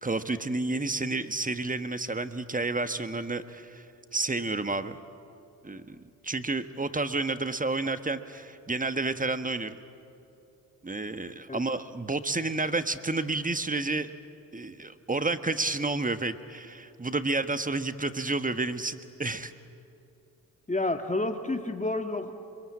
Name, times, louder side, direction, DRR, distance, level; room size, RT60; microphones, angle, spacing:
voice 1, 0.0-3.9 4.1-5.0 5.6-9.8 10.8-14.1 14.5-19.5, right 3 dB, 20° right, 10 dB, 1.5 m, -30 dB
voice 2, 20.7-22.3, left 2 dB, 15° left, 6 dB, 1.7 m, -29 dB
27.5 x 23.0 x 8.7 m, 2.7 s
hypercardioid pair, 40°, 42 cm